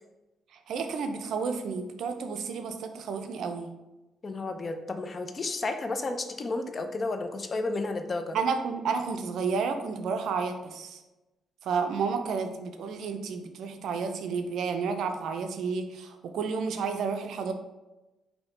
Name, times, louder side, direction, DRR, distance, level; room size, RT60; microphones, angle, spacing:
voice 1, 0.7-3.7 8.3-11.0 11.6-17.5, right 5 dB, 75° right, 7 dB, 0.4 m, -31 dB
voice 2, 4.2-8.4, left 3 dB, 35° left, 7 dB, 0.4 m, -32 dB
4.3 x 2.8 x 3.2 m, 1.1 s
cardioid pair, 90°, 0 cm